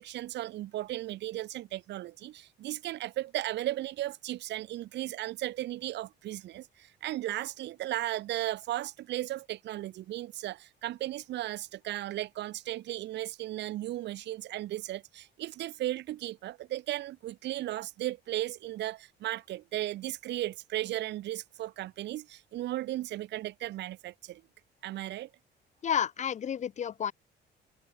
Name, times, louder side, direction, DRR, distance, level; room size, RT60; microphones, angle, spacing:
voice 1, 0.0-24.4 24.8-25.3, right 15 dB, 75° right, 1.9 m, -36 dB
voice 2, 25.8-27.1, left 8 dB, 40° left, 0.8 m, -30 dB
open air
cardioid pair, 125°, 18 cm